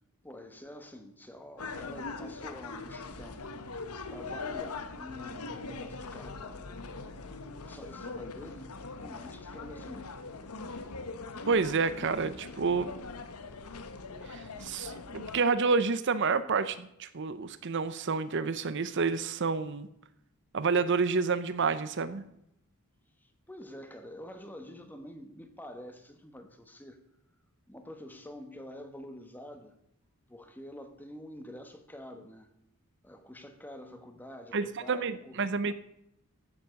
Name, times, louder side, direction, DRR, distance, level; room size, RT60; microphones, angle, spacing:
voice 1, 0.2-3.5 4.1-6.7 7.6-8.7 9.0-10.1 10.7-10.9 23.2-27.0 27.7-29.8 30.3-32.5 33.0-35.4 35.7-35.8, left 1 dB, 10° left, 1.3 m, -47 dB
sound 1, 1.6-15.4, left 3 dB, 85° left, 1.1 m, -41 dB
voice 2, 11.5-12.9 14.3-19.9 20.5-22.2 34.5-35.7, right 4 dB, 55° right, 0.6 m, -29 dB
15.0 x 7.2 x 6.5 m
head